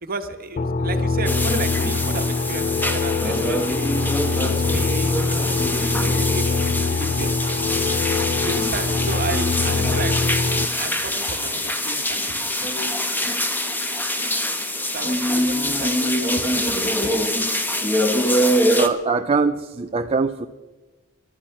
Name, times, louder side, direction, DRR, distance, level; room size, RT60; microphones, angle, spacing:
voice 1, 0.0-3.8 4.3-7.3 8.4-10.2 10.8-12.5 14.9-17.1, right 3 dB, 45° right, 8 dB, 1.3 m, -33 dB
sound 1, 0.6-10.7, left 4 dB, 40° left, 0.5 m, -23 dB
sound 2, 1.3-18.9, equal, 10° left, 1.1 m, -24 dB
voice 2, 18.4-20.5, right 4 dB, 25° right, 7 dB, 0.5 m, -23 dB
19.5 x 13.0 x 5.7 m, 1.3 s
head